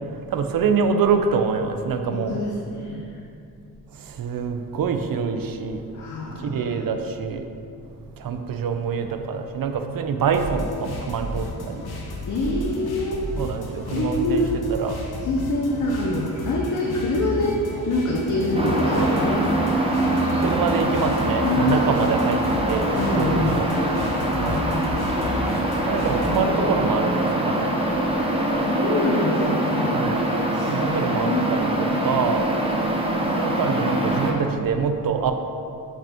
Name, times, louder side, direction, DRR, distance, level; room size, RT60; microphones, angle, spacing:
voice 1, 0.3-2.4 4.1-5.8 6.4-7.4 8.2-11.8 13.4-15.0 20.4-22.9 23.1-23.7 24.4-24.7 25.9-27.8 29.9-30.2 30.7-31.7 32.0-32.4 33.2-35.3, right 6 dB, 65° right, 6 dB, 0.5 m, -25 dB
voice 2, 2.1-3.1 5.9-6.9 12.2-13.1 13.9-14.5 15.2-17.6 17.9-19.6 21.4-22.0 22.3-22.4 22.9-23.9 24.4-25.3 28.6-30.0 30.5-31.5, left 2 dB, 50° left, -2 dB, 0.6 m, -26 dB
sound 1, 10.3-26.5, left 1 dB, 80° left, 0.8 m, -33 dB
sound 2, 16.3-28.3, left 1 dB, 20° left, 0.8 m, -38 dB
sound 3, 18.5-34.3, right 1 dB, 15° right, 0.5 m, -24 dB
5.4 x 5.1 x 3.5 m, 2.6 s
wide cardioid pair, 165°, 38 cm